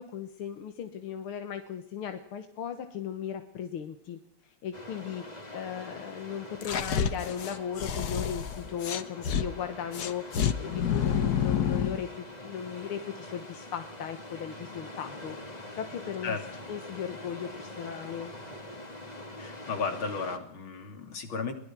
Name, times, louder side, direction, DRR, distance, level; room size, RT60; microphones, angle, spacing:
voice 1, 0.0-16.4 16.7-18.3, left 8 dB, 85° left, 8 dB, 2.2 m, -37 dB
sound 1, 4.7-20.4, left 1 dB, 20° left, 2.4 m, -44 dB
sound 2, 6.6-9.4 9.9-12.0, left 8 dB, 55° left, 1.5 m, -29 dB
voice 2, 19.4-21.5, left 4 dB, 70° left, 6 dB, 3.6 m, -34 dB
23.0 x 19.5 x 6.1 m, 0.69 s
omnidirectional pair, 2.3 m